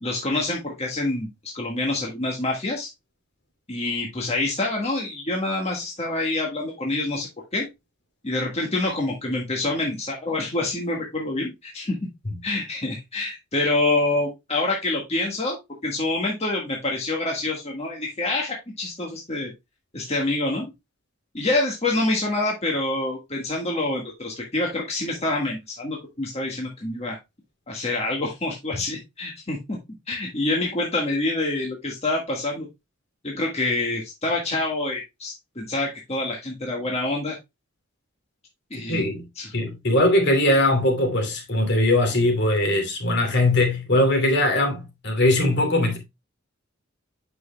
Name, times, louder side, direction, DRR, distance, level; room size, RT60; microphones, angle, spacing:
voice 1, 0.0-1.3 1.5-2.9 3.7-7.7 8.2-12.0 12.4-15.6 15.8-19.5 19.9-20.7 21.3-27.2 27.7-29.8 30.1-32.7 33.2-37.4 38.7-39.0 39.4-39.5, left 2 dB, 30° left, 1.6 m, -26 dB
voice 2, 38.9-39.2 39.5-46.0, left 1 dB, 60° left, 2.7 m, -20 dB
8.7 x 6.1 x 2.2 m
head